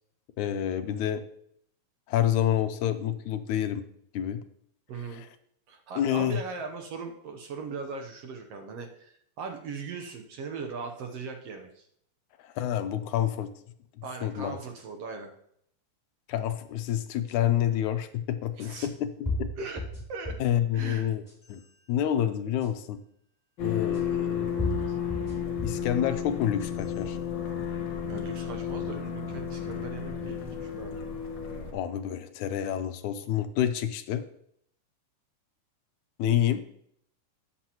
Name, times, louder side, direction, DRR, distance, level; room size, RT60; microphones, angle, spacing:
voice 1, 0.4-1.2 2.1-3.8 4.1-4.4 5.1-5.3 6.0-6.4 12.4-13.5 14.2-14.6 16.3-19.5 20.4-21.2 21.5-21.6 21.9-23.0 23.6-24.9 25.6-27.2 31.7-34.2 36.2-36.6, left 11 dB, 80° left, 9 dB, 2.1 m, -28 dB
voice 2, 4.9-5.2 5.7-11.8 14.0-15.3 18.6-18.9 19.6-19.8 20.1-20.4 20.7-21.1 28.1-31.1, right 4 dB, 65° right, 5 dB, 1.7 m, -39 dB
sound 1, 17.3-17.4 18.6-18.7 19.3-20.6 21.1-21.6 22.6-22.7 23.9-24.0 24.6-25.9 26.4-27.0, left 1 dB, 5° left, 3.4 m, -34 dB
sound 2, 23.6-31.7, left 8 dB, 50° left, 1.5 m, -32 dB
13.0 x 8.4 x 3.0 m, 0.68 s
omnidirectional pair, 3.5 m